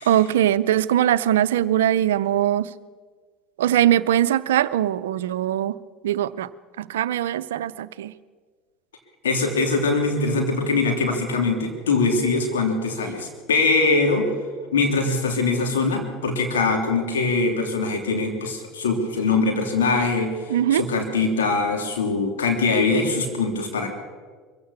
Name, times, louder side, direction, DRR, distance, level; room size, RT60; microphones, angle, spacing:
voice 1, 0.1-2.7 3.6-5.7 6.0-6.5 6.8-8.1 20.5-20.8, right 11 dB, 85° right, 15 dB, 0.6 m, -21 dB
voice 2, 9.2-14.3 14.7-20.3 20.7-23.9, left 3 dB, 90° left, 3 dB, 3.1 m, -22 dB
23.0 x 16.0 x 7.0 m, 1.5 s
hypercardioid pair, 80°, 0 cm